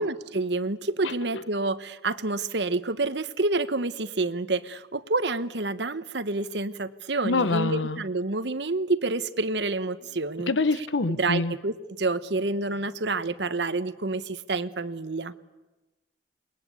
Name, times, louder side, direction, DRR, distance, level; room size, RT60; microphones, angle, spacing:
voice 1, 0.0-10.5 11.2-11.7 12.0-15.3, right 3 dB, 65° right, 12 dB, 1.1 m, -28 dB
voice 2, 1.0-1.4 7.2-8.0 10.5-11.5, left 3 dB, 85° left, 14 dB, 1.0 m, -26 dB
28.0 x 21.0 x 8.4 m, 1.1 s
head